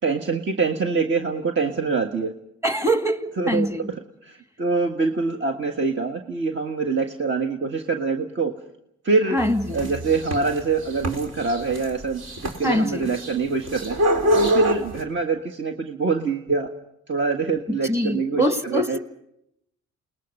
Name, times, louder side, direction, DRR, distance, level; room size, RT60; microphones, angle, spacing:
voice 1, 0.0-2.3 3.4-4.0 4.2-8.5 9.0-9.4 9.7-14.0 14.3-16.7 17.1-18.4 18.7-19.0, right 4 dB, 40° right, 1.6 m, -24 dB
voice 2, 2.6-3.9 9.3-9.9 12.6-13.1 17.7-19.0, equal, 10° right, 2.1 m, -24 dB
sound 1, 9.4-15.0, equal, 55° right, 4.2 m, -25 dB
29.0 x 20.5 x 5.5 m
cardioid pair, 90°, 30 cm